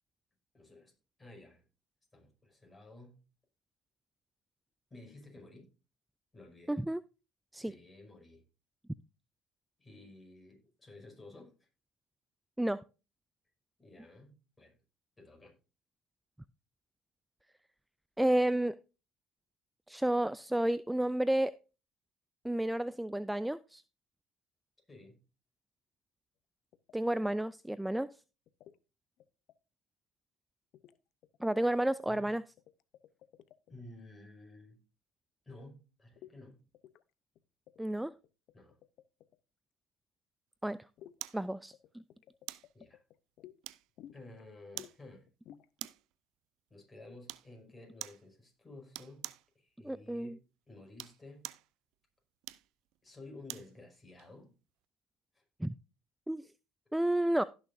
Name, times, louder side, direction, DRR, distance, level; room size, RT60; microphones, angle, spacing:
voice 1, 0.5-0.9 1.2-1.6 2.1-3.2 4.9-5.7 6.3-6.8 7.7-8.4 9.8-11.7 13.8-14.7 15.2-15.6 24.9-25.2 32.1-32.2 33.7-34.8 35.5-36.6 38.5-38.8 42.7-43.0 44.1-45.3 46.7-49.3 49.6-51.5 53.0-54.5 55.3-55.4, left 2 dB, 20° left, 5.5 m, -53 dB
voice 2, 6.7-7.0 7.5-7.7 12.6-12.8 18.2-18.7 19.9-21.5 22.4-23.8 26.9-28.1 31.4-32.4 37.8-38.1 40.6-40.8 41.3-42.0 49.8-50.4 55.6-55.7 56.3-56.4 56.9-57.4, right 1 dB, 5° right, 0.4 m, -31 dB
sound 1, 26.7-26.9 28.5-28.8 29.2-29.5 30.7-31.0 31.2-31.9 32.2-33.8 36.2-36.3 36.7-37.0 37.4-37.5 37.7-39.4 41.0-41.2 41.7-43.6 44.0-44.4 44.7-45.0 45.3-45.7, left 11 dB, 65° left, 0.7 m, -55 dB
sound 2, 41.2-41.5 42.5-42.7 43.6-44.1 44.8-45.0 45.8-46.1 47.3-47.5 48.0-48.3 48.9-49.5 50.8-51.7 52.4-53.7 54.2-54.3, right 17 dB, 70° right, 0.5 m, -45 dB
16.5 x 6.5 x 2.6 m
supercardioid pair, 75°, 0 cm